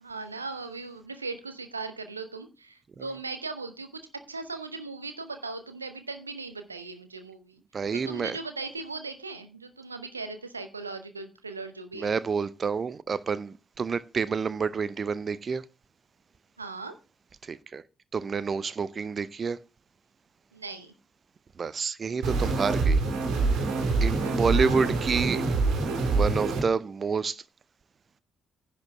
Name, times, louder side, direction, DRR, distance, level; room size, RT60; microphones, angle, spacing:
voice 1, 0.0-4.0 4.3-7.6 7.9-12.1 16.6-17.0 20.5-20.9 24.2-24.9, right 3 dB, 85° right, 0.7 m, -38 dB
voice 2, 7.7-8.4 11.9-15.6 17.4-17.8 18.1-19.6 21.6-23.0 24.0-25.4 26.1-27.4, right 5 dB, 40° right, 0.6 m, -28 dB
sound 1, 22.2-26.6, right 3 dB, 65° right, 2.4 m, -25 dB
10.5 x 5.3 x 6.6 m
figure-of-eight pair, 40°, 0 cm